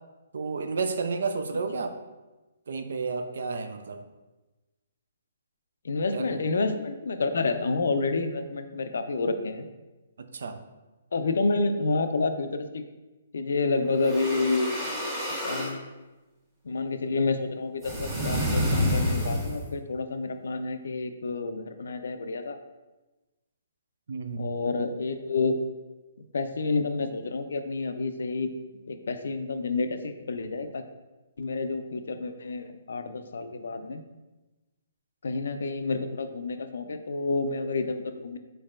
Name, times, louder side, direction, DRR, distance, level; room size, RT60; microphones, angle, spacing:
voice 1, 0.3-2.0 2.7-4.0 6.1-6.3 10.2-10.6 24.1-24.7, right 4 dB, 70° right, 9 dB, 0.4 m, -31 dB
voice 2, 5.8-9.7 11.1-12.8 13.3-14.9 15.4-15.8 16.6-22.6 24.4-25.6 26.3-28.5 28.9-30.8 31.4-34.0 35.2-38.4, left 3 dB, 70° left, 8 dB, 0.4 m, -29 dB
sound 1, 13.9-15.8 17.8-19.7, equal, 25° right, 1.2 m, -28 dB
4.4 x 4.1 x 2.4 m, 1.1 s
hypercardioid pair, 140°, 0 cm